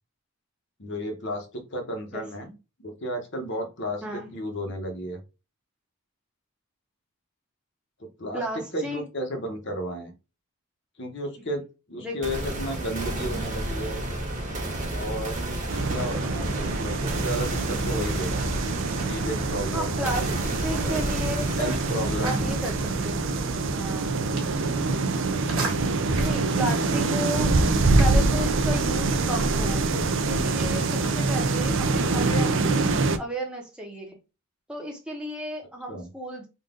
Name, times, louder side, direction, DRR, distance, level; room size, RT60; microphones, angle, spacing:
voice 1, 0.8-2.5 2.8-5.2 8.2-8.4 8.7-10.1 11.0-11.6 11.9-14.0 14.9-15.4 15.9-18.5 19.1-20.1 20.7-21.0 21.6-22.6 35.9-36.1, equal, 50° left, 1.1 m, -33 dB
voice 2, 4.0-4.3 8.3-9.0 12.0-12.2 19.6-21.8 22.2-23.3 23.7-24.2 26.2-27.6 28.0-34.2 34.7-36.5, equal, 5° right, 0.9 m, -34 dB
sound 1, 12.2-26.2, right 1 dB, 35° right, 1.5 m, -32 dB
sound 2, 15.7-33.2, right 3 dB, 55° right, 0.5 m, -25 dB
sound 3, 21.5-32.8, right 4 dB, 75° right, 1.2 m, -41 dB
3.9 x 2.5 x 3.8 m
head